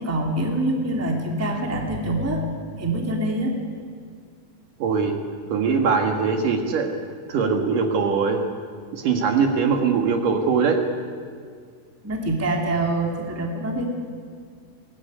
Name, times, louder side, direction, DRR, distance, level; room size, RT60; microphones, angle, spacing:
voice 1, 0.0-2.4 2.8-3.6 12.0-13.9, right 1 dB, 5° right, 1 dB, 2.2 m, -25 dB
voice 2, 4.8-5.2 5.5-6.9 7.3-8.4 8.9-10.8, right 5 dB, 60° right, 4 dB, 3.0 m, -21 dB
22.0 x 18.0 x 9.9 m, 2.1 s
omnidirectional pair, 4.5 m